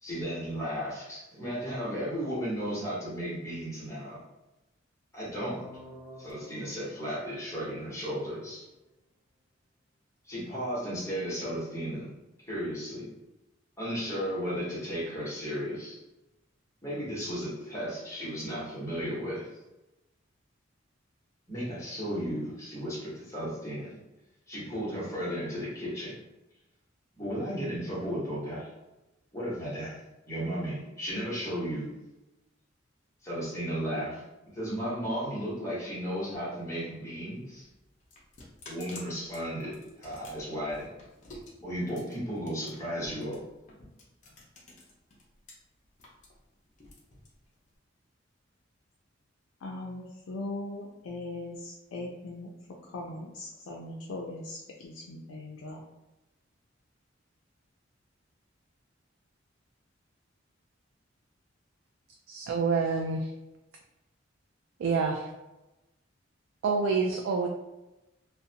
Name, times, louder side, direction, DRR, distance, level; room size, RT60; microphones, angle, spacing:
voice 1, 0.0-4.2 5.1-5.6 6.2-8.7 10.2-12.1 12.4-13.1 13.8-16.0 16.8-19.5 21.5-23.9 24.5-26.2 27.2-28.7 29.3-30.0 30.3-31.9 33.2-34.2 34.5-37.7 38.7-40.9 41.6-43.4, equal, 15° left, -8 dB, 0.9 m, -34 dB
sound 1, 5.4-8.3, right 1 dB, 15° right, 0.6 m, -49 dB
sound 2, 37.3-45.5 45.8-47.8, left 1 dB, 40° left, 0.6 m, -50 dB
voice 2, 49.6-52.5 52.8-55.8, left 2 dB, 90° left, -1 dB, 0.4 m, -39 dB
voice 3, 62.3-63.3 64.8-65.3 66.6-67.5, right 4 dB, 90° right, 2 dB, 0.3 m, -27 dB
2.5 x 2.1 x 2.7 m, 0.99 s
head